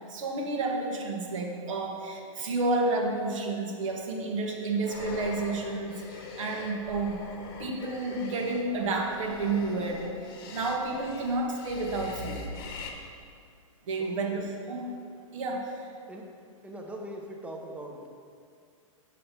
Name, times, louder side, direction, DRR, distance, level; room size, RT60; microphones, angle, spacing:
voice 1, 0.1-7.2 7.6-10.1 10.5-12.4 13.9-14.9 15.3-15.8, right 2 dB, 65° right, 1 dB, 1.4 m, -30 dB
sound 1, 4.9-12.9, left 4 dB, 40° left, 1.0 m, -43 dB
voice 2, 14.0-14.3 16.1-16.3 16.6-18.1, right 1 dB, 5° right, 1 dB, 0.7 m, -41 dB
7.4 x 6.5 x 4.4 m, 2.2 s
hypercardioid pair, 150°, 17 cm